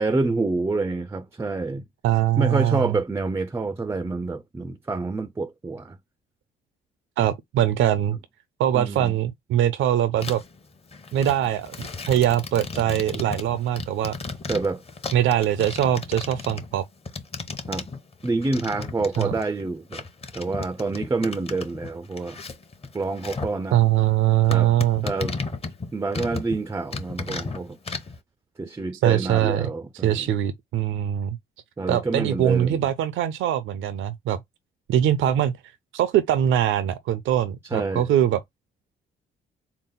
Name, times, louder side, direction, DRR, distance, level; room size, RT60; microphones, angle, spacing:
voice 1, 0.0-1.8 2.4-6.0 8.7-9.2 14.5-14.8 17.7-17.9 18.2-20.0 20.3-22.4 22.9-23.8 24.5-24.7 25.0-25.4 25.9-27.8 28.6-30.3 31.8-32.9 37.7-38.1, right 3 dB, 15° right, 0.4 m, -27 dB
voice 2, 2.0-2.9 7.2-8.2 8.6-10.4 11.1-14.1 15.1-16.8 19.2-19.3 23.7-25.0 29.0-29.7 30.0-31.4 31.9-34.4 34.9-35.5 35.9-38.4, right 11 dB, 75° right, 0.5 m, -22 dB
sound 1, 10.2-10.6 10.9-19.7 19.9-23.6 24.0-24.1 24.5-26.6 26.9-28.2, left 3 dB, 30° left, 0.8 m, -34 dB
3.9 x 2.0 x 3.8 m
cardioid pair, 90°, 20 cm